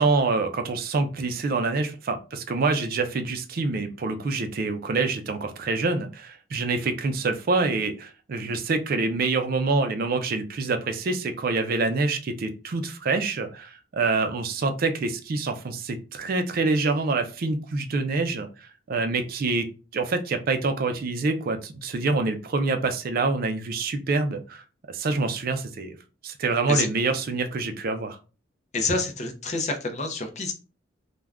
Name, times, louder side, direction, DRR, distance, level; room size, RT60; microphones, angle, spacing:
voice 1, 0.0-18.5 18.9-19.7 19.9-24.6 24.9-26.0 26.2-28.2, right 3 dB, 50° right, 7 dB, 0.4 m, -26 dB
voice 2, 28.7-30.5, left 3 dB, 35° left, 5 dB, 0.5 m, -27 dB
2.4 x 2.2 x 3.4 m, 0.33 s
head